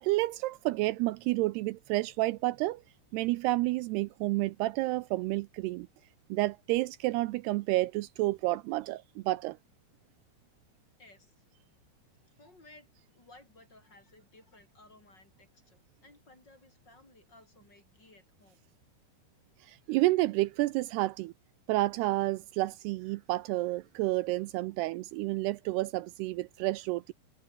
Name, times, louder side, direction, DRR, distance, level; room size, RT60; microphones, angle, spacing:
voice 1, 0.0-2.8 3.1-5.9 6.3-9.6 19.6-21.3 21.7-27.1, right 19 dB, 80° right, 2.6 m, -30 dB
voice 2, 11.0-11.4 12.4-18.6, left 2 dB, 25° left, 6.0 m, -58 dB
omnidirectional pair, 4.8 m